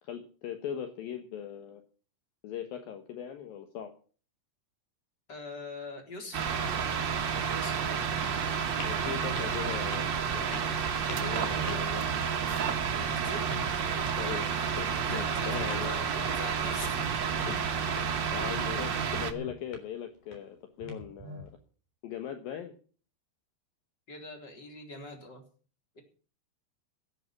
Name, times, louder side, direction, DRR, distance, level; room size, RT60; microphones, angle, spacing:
voice 1, 0.0-1.8 2.4-3.9 8.9-10.7 11.1-12.0 14.0-14.5 14.8-15.9 17.5-17.9 18.3-21.5 22.0-22.7, left 9 dB, 70° left, 6 dB, 2.9 m, -40 dB
voice 2, 5.3-6.5 7.2-8.0 13.0-13.5 14.9-17.0 24.1-25.4 25.9-26.0, left 2 dB, 25° left, 4 dB, 4.2 m, -43 dB
sound 1, 6.3-19.3, right 7 dB, 80° right, 1.0 m, -30 dB
sound 2, 7.5-21.5, left 4 dB, 55° left, 5.0 m, -50 dB
Telephone, 9.1-9.9 11.1-11.8 13.0-13.8 15.0-15.7 16.9-17.7 18.9-19.6 20.8-21.5, right 1 dB, 55° right, 3.0 m, -44 dB
17.0 x 11.0 x 6.0 m, 0.41 s
omnidirectional pair, 4.6 m